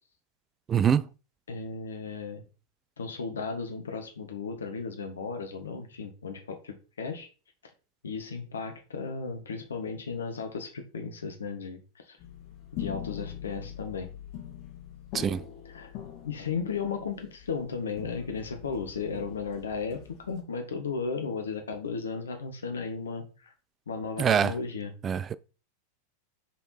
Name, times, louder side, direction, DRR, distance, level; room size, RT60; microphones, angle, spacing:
voice 1, 0.7-1.1 15.1-15.4 24.2-24.5 25.0-25.3, right 8 dB, 25° right, 0.4 m, -24 dB
voice 2, 1.5-2.4 3.0-7.3 8.0-12.2 12.7-14.1 15.7-16.0 16.2-20.0 20.3-23.5 23.9-24.9, left 5 dB, 70° left, 1.6 m, -35 dB
sound 1, 12.2-20.4, left 10 dB, 40° left, 2.0 m, -43 dB
6.1 x 5.1 x 4.1 m
figure-of-eight pair, 90°, 0 cm